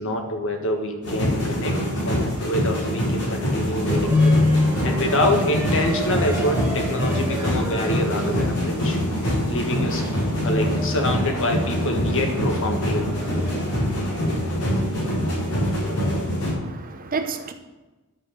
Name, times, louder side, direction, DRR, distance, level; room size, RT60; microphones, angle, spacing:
voice 1, 0.0-4.4 4.8-9.0 9.5-10.1 10.4-13.2, left 1 dB, 60° left, 3 dB, 1.6 m, -26 dB
sound 1, 1.0-16.5, equal, 80° left, 4.3 m, -24 dB
voice 2, 3.3-3.7 4.8-4.9 16.6-17.5, right 4 dB, 40° right, 7 dB, 0.9 m, -32 dB
sound 2, 3.9-14.1, left 2 dB, 10° right, 1.9 m, -27 dB
11.0 x 5.8 x 6.9 m, 1.1 s
head